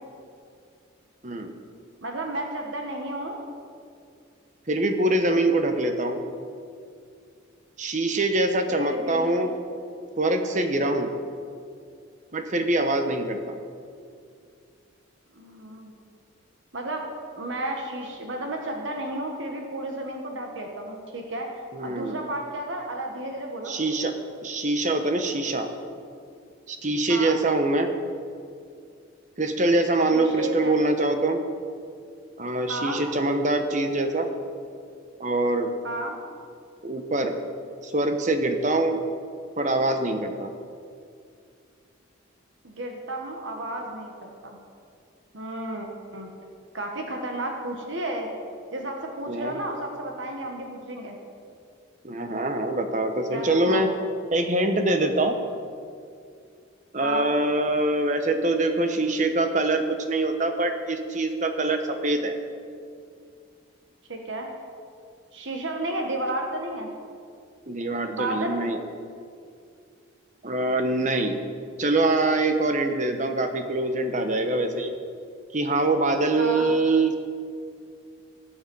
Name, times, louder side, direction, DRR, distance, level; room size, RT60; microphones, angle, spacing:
voice 1, 2.0-3.4 8.7-9.5 15.3-15.9 16.7-17.1 17.3-23.7 27.1-27.4 30.1-30.8 32.7-33.0 35.8-36.2 42.6-44.6 45.3-45.9 46.1-46.3 46.7-48.3 48.7-51.2 53.3-53.9 57.0-57.3 64.1-64.5 65.3-66.9 68.1-68.6 76.4-76.7, right 1 dB, 70° right, 1 dB, 1.5 m, -32 dB
voice 2, 4.7-6.2 7.8-9.5 10.2-11.1 12.3-13.5 21.7-22.2 23.7-24.1 24.4-25.7 26.7-27.9 29.4-31.4 32.4-34.3 35.2-35.7 36.8-37.3 37.8-39.0 39.6-40.5 49.3-49.5 52.0-53.9 54.3-55.4 56.9-62.3 67.7-68.8 70.4-71.4 71.8-75.0 75.5-77.1, right 2 dB, 35° right, 6 dB, 1.0 m, -24 dB
18.0 x 7.0 x 5.5 m, 2.3 s
head